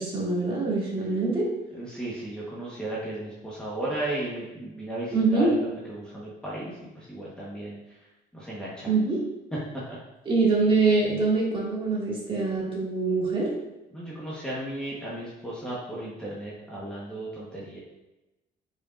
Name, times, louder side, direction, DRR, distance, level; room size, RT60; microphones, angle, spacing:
voice 1, 0.0-1.5 5.1-5.5 8.9-9.2 10.3-13.5, right 3 dB, 30° right, -5 dB, 2.1 m, -24 dB
voice 2, 1.7-7.8 8.3-8.9 9.9-10.0 13.9-17.8, right 1 dB, 5° left, -7 dB, 1.2 m, -35 dB
8.0 x 5.0 x 2.5 m, 0.99 s
cardioid pair, 150°, 18 cm